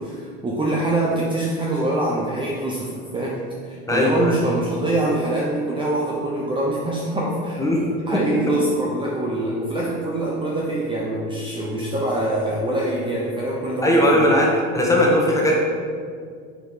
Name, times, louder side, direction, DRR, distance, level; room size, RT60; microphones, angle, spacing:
voice 1, 0.0-14.3, right 1 dB, 15° right, -4 dB, 0.7 m, -24 dB
voice 2, 3.9-4.4 7.6-7.9 8.1-8.2 13.8-14.5 14.7-15.6, equal, 10° left, -3 dB, 1.3 m, -18 dB
5.1 x 4.6 x 4.4 m, 2.2 s
supercardioid pair, 100°, 31 cm